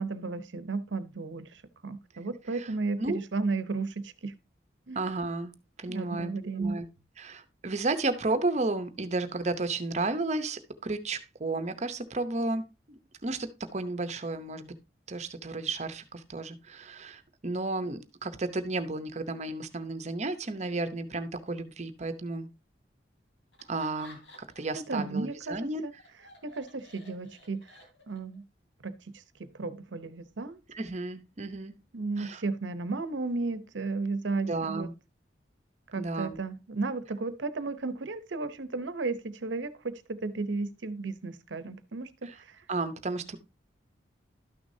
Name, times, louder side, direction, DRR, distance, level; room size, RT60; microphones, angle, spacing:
voice 1, 0.0-1.5 1.8-4.3 4.9-5.0 5.9-6.8 24.7-25.9 26.4-27.6 28.1-28.4 28.8-28.9 29.4-30.6 31.9-34.9 35.9-42.3, right 3 dB, 85° right, 0.8 m, -34 dB
voice 2, 4.9-5.5 5.8-6.3 6.6-6.8 7.2-14.7 15.1-22.5 23.7-25.8 30.7-31.7 32.2-32.4 34.5-34.9 35.9-36.4 42.2-42.4 42.7-43.4, right 2 dB, 40° right, 0.7 m, -33 dB
Laughter, 23.5-24.8 25.2-28.4, left 1 dB, 85° left, 3.1 m, -54 dB
12.0 x 6.3 x 2.7 m
head